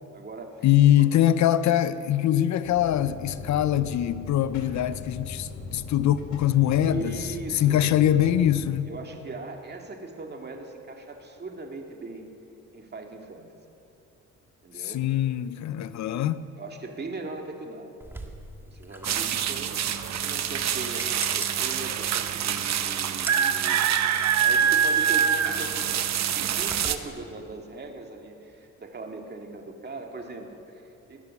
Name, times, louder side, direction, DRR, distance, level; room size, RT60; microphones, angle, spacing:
voice 1, 0.1-0.7 0.9-1.1 6.8-7.9 8.9-12.3 12.7-13.5 14.6-15.0 16.6-17.9 18.7-23.8 24.1-26.1 26.3-31.2, right 3 dB, 35° right, 2.2 m, -40 dB
voice 2, 0.6-8.9 14.8-16.4, left 11 dB, 65° left, 0.6 m, -23 dB
sound 1, 2.6-8.7, left 4 dB, 85° left, 2.7 m, -39 dB
sound 2, 18.0-27.0, right 1 dB, 10° right, 1.7 m, -43 dB
sound 3, 19.0-27.0, right 8 dB, 65° right, 0.9 m, -25 dB
19.0 x 10.5 x 7.2 m
cardioid pair, 90°, 30 cm